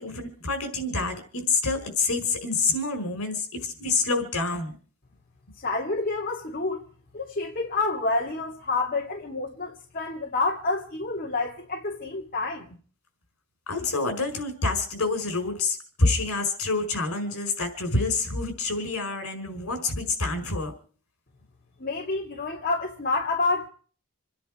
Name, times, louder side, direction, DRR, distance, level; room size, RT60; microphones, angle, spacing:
voice 1, 0.0-4.7 13.7-20.7, left 3 dB, 70° left, 4.9 m, -27 dB
voice 2, 5.6-6.8 7.1-12.7 21.8-23.7, left 3 dB, 40° left, 2.3 m, -28 dB
28.0 x 10.5 x 4.9 m
head